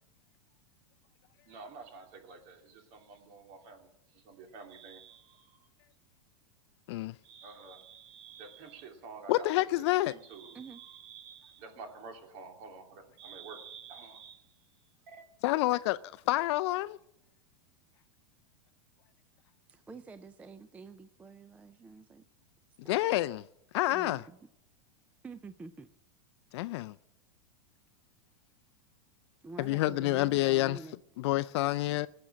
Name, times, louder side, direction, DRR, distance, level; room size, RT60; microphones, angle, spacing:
voice 1, 1.5-5.5 7.2-14.4 15.1-15.2, right 5 dB, 50° right, 3.0 m, -49 dB
voice 2, 9.3-10.1 15.4-16.0 16.3-17.0 22.8-23.4 23.7-24.2 26.5-26.9 29.6-30.8 31.2-32.1, left 17 dB, 60° left, 0.4 m, -28 dB
voice 3, 19.7-22.2 22.8-23.2 23.9-24.2 25.2-25.9 29.4-31.0, right 4 dB, 10° right, 0.4 m, -47 dB
18.5 x 7.7 x 6.2 m
supercardioid pair, 145°, 16 cm